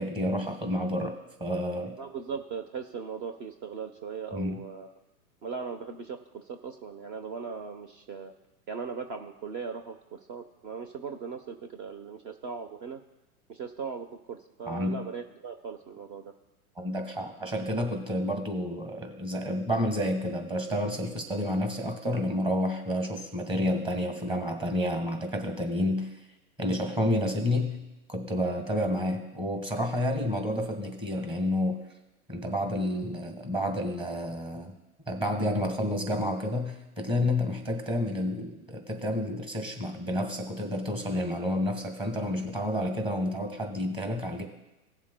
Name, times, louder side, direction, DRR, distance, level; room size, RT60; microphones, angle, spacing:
voice 1, 0.0-2.0 4.3-4.6 14.7-15.0 16.8-26.1 26.6-27.8 28.1-31.8 32.3-34.7 35.1-44.4, left 1 dB, 10° right, 4 dB, 1.5 m, -30 dB
voice 2, 2.0-5.0 5.4-8.3 8.7-13.0 13.5-16.3, right 6 dB, 40° right, 7 dB, 0.9 m, -39 dB
17.5 x 7.3 x 2.3 m, 0.97 s
hypercardioid pair, 130°, 45 cm